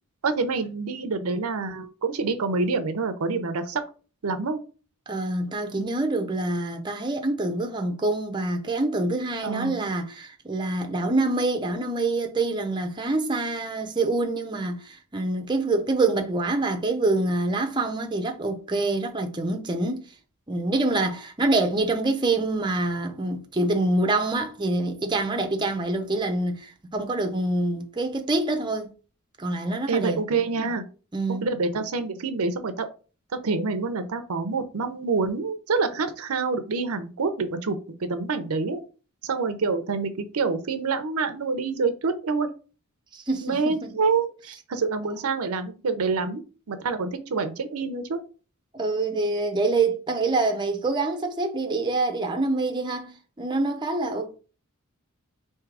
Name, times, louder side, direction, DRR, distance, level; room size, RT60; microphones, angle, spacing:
voice 1, 0.2-3.8 4.2-4.6 9.4-9.8 29.9-30.8 31.4-32.9 33.4-38.8 39.2-42.5 43.4-46.4 46.7-48.2, right 4 dB, 75° right, 0.6 m, -27 dB
voice 2, 5.1-20.0 20.5-28.9 29.4-30.2 31.1-31.5 43.1-43.9 48.7-54.4, right 2 dB, 20° right, 0.6 m, -26 dB
3.6 x 2.7 x 4.6 m
head